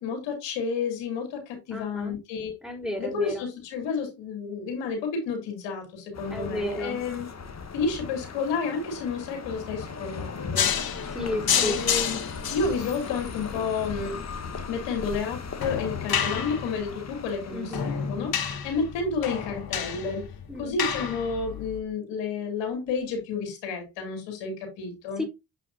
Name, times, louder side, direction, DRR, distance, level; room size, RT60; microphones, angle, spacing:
voice 1, 0.0-2.5 3.0-7.3 7.7-11.1 11.5-12.2 12.5-14.3 14.7-20.2 20.6-25.2, left 5 dB, 85° left, 2.8 m, -31 dB
voice 2, 1.7-2.2 2.6-3.5 6.3-7.0 11.1-11.8 17.5-18.0 20.5-20.7 25.2-25.3, left 1 dB, ahead, 4.1 m, -32 dB
sound 1, 6.1-19.0, left 5 dB, 40° left, 1.4 m, -38 dB
sound 2, 10.5-21.8, left 7 dB, 55° left, 1.5 m, -30 dB
7.6 x 5.9 x 2.7 m
hypercardioid pair, 45°, 42 cm